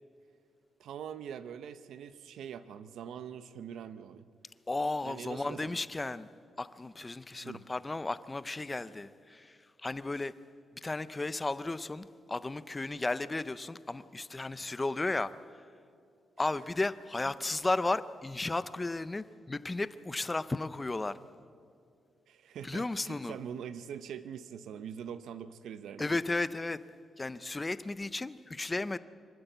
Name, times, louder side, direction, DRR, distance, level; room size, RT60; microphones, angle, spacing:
voice 1, 0.8-4.3 5.0-5.8 7.4-7.6 22.3-26.1, right 8 dB, 85° right, 0.7 m, -43 dB
voice 2, 4.7-6.3 6.6-10.3 10.8-15.3 16.4-21.2 22.6-23.4 26.0-26.8 27.2-29.0, left 2 dB, 15° left, 0.5 m, -34 dB
24.5 x 13.0 x 8.1 m
wide cardioid pair, 175°, 0 cm